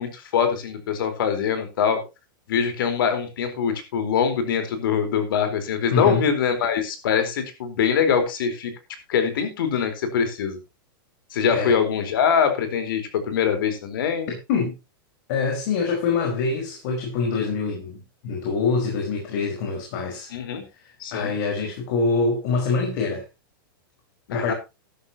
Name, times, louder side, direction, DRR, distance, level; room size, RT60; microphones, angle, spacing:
voice 1, 0.0-2.0 2.5-8.7 9.1-10.6 11.3-13.0 13.3-14.3 20.3-20.7 21.0-21.3 24.3-24.5, left 7 dB, 70° left, 9 dB, 4.2 m, -23 dB
voice 2, 5.9-6.2 11.5-11.7 14.5-14.7 15.3-20.3 20.8-23.2 24.3-24.5, left 4 dB, 50° left, 1 dB, 5.0 m, -25 dB
13.5 x 12.5 x 2.9 m, 0.26 s
supercardioid pair, 155°, 12 cm